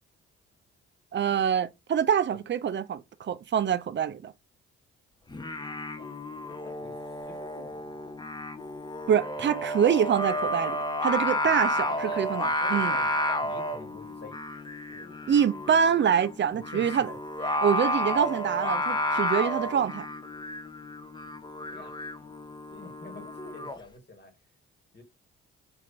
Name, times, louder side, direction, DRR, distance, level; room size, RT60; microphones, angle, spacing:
voice 1, 1.1-4.3 9.1-13.0 15.3-17.1 17.4-20.1, right 8 dB, 35° right, 0.5 m, -25 dB
Singing, 5.3-23.8, left 1 dB, 15° left, 0.7 m, -31 dB
voice 2, 6.5-6.9 7.3-7.9 11.8-14.4 14.9-15.3 16.5-16.9 18.1-18.2 21.7-21.9 22.7-24.3 24.9-25.0, left 2 dB, 30° left, 1.4 m, -46 dB
5.4 x 2.9 x 2.4 m
hypercardioid pair, 40°, 34 cm